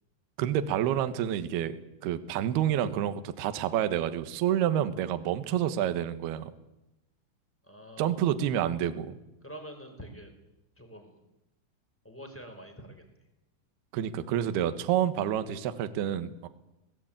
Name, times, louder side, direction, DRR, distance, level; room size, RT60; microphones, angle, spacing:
voice 1, 0.4-1.7 2.0-6.5 8.0-9.2 13.9-16.5, right 10 dB, 65° right, 10 dB, 2.8 m, -28 dB
voice 2, 7.7-8.2 9.4-10.3 10.8-11.2 12.0-13.0, equal, 5° left, 5 dB, 3.7 m, -46 dB
26.0 x 18.5 x 9.0 m, 0.95 s
omnidirectional pair, 5.8 m